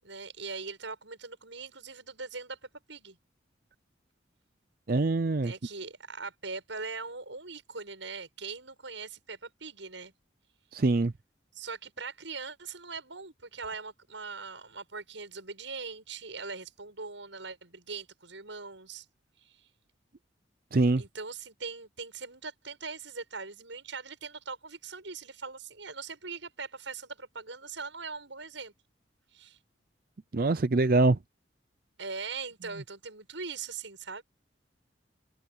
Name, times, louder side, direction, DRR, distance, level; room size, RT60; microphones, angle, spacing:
voice 1, 0.0-3.2 5.4-10.1 11.5-19.1 19.4-19.7 21.0-28.7 29.3-29.6 32.0-34.2, right 4 dB, 80° right, 7.6 m, -41 dB
voice 2, 4.9-5.5 10.7-11.1 20.7-21.0 30.3-31.2, right 2 dB, 50° right, 0.5 m, -24 dB
head